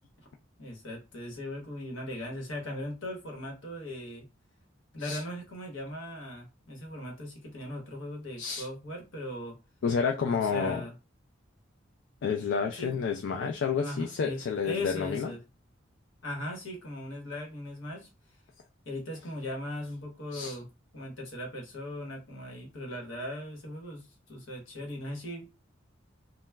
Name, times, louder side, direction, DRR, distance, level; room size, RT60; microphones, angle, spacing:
voice 1, 0.6-4.3 4.9-9.6 10.3-10.9 12.7-13.1 13.8-15.4 16.2-18.1 18.8-20.7 20.9-25.5, left 1 dB, 85° left, 1.0 m, -39 dB
voice 2, 9.8-10.8 12.2-15.3 20.3-20.6, left 6 dB, 65° left, 0.4 m, -30 dB
2.2 x 2.0 x 3.3 m
head